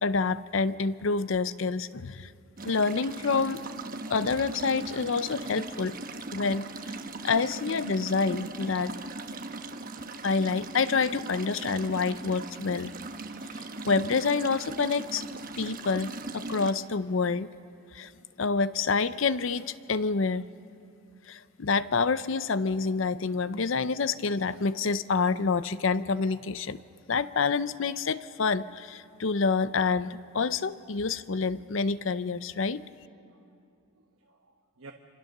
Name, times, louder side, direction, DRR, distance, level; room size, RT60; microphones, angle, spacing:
voice 1, 0.0-2.3 2.6-3.6 4.1-6.0 6.3-6.7 7.2-9.1 10.2-12.9 13.8-15.2 15.6-17.5 17.9-18.1 18.4-20.4 21.3-26.8 27.1-32.8, left 4 dB, 65° left, 15 dB, 0.6 m, -27 dB
sound 1, 2.6-16.7, right 2 dB, 40° right, 1.2 m, -39 dB
voice 2, 33.2-34.9, right 3 dB, 70° right, 3 dB, 1.2 m, -54 dB
26.0 x 26.0 x 6.6 m, 2.5 s
head